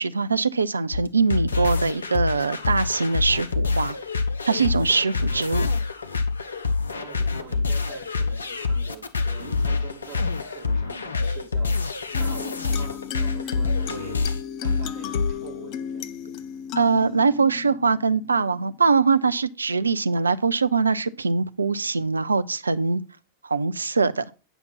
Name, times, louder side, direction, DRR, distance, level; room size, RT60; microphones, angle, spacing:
voice 1, 0.0-4.0 4.5-5.7 16.8-23.0 23.4-24.2, right 4 dB, 75° right, 0.4 m, -22 dB
sound 1, 0.9-15.3, left 4 dB, 75° left, 0.7 m, -26 dB
voice 2, 6.9-11.7 12.2-14.2 14.6-16.3, right 8 dB, 40° right, 3.9 m, -44 dB
sound 2, 12.1-19.1, left 8 dB, 40° left, 0.5 m, -35 dB
9.0 x 5.8 x 4.0 m
figure-of-eight pair, 90°, 0 cm